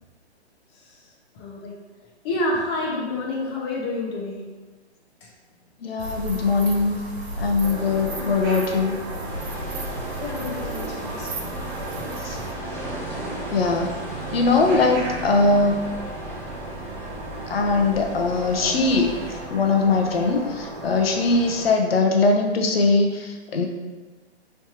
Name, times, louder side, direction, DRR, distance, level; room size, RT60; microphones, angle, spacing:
voice 1, 1.3-1.8 2.2-4.4 10.2-11.5 12.4-12.5 21.9-22.0, left 2 dB, 25° left, -2 dB, 0.9 m, -29 dB
voice 2, 5.8-7.0 7.4-9.0 12.2-12.4 13.5-13.9 14.3-15.8 17.5-19.2 19.5-23.7, left 3 dB, 60° left, 3 dB, 0.8 m, -21 dB
sound 1, 6.0-12.5, right 1 dB, 70° right, 0.8 m, -35 dB
sound 2, 7.6-21.7, right 2 dB, 20° right, 0.7 m, -35 dB
sound 3, 9.2-19.4, equal, 5° left, 0.3 m, -38 dB
5.3 x 3.2 x 3.0 m, 1.3 s
figure-of-eight pair, 135°, 33 cm